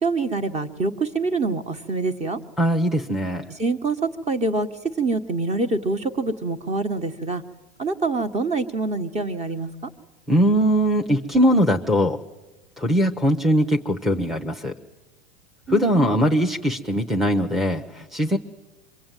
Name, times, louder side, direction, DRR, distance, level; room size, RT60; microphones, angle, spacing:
voice 1, 0.0-2.4 3.6-4.7 5.0-7.4 7.8-9.7 15.7-16.1, right 3 dB, 20° right, 10 dB, 1.5 m, -25 dB
voice 2, 2.6-3.5 10.3-12.2 12.8-14.7 15.7-18.4, equal, ahead, 3 dB, 0.9 m, -21 dB
25.5 x 23.5 x 9.2 m, 1.1 s
supercardioid pair, 125°, 33 cm